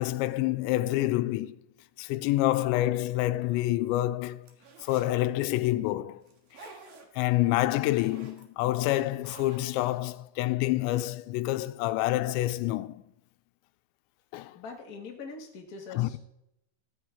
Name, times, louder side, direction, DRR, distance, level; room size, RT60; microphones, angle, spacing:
voice 1, 0.0-1.6 2.0-4.5 4.8-6.2 7.2-13.0 14.3-14.6 16.0-16.2, left 16 dB, 90° left, 2.9 m, -27 dB
sound 1, 4.5-5.2 6.3-7.2 7.6-8.4 9.0-10.0, right 4 dB, 55° right, 2.5 m, -50 dB
voice 2, 14.5-16.2, left 4 dB, 50° left, 1.0 m, -42 dB
15.0 x 13.5 x 3.6 m
omnidirectional pair, 5.0 m